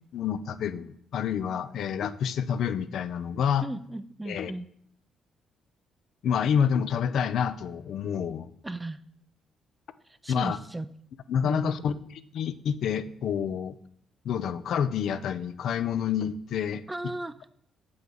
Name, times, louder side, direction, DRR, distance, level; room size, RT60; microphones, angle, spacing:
voice 1, 0.1-3.7 4.3-4.5 6.2-8.5 10.3-10.6 11.3-11.9 12.3-13.8 14.2-16.8, left 8 dB, 70° left, 13 dB, 0.4 m, -28 dB
voice 2, 3.6-4.7 8.6-9.0 10.1-10.9 11.4-11.9 16.9-17.5, right 2 dB, 15° right, 13 dB, 0.3 m, -36 dB
7.5 x 5.9 x 3.8 m, 0.67 s
cardioid pair, 90°, 0 cm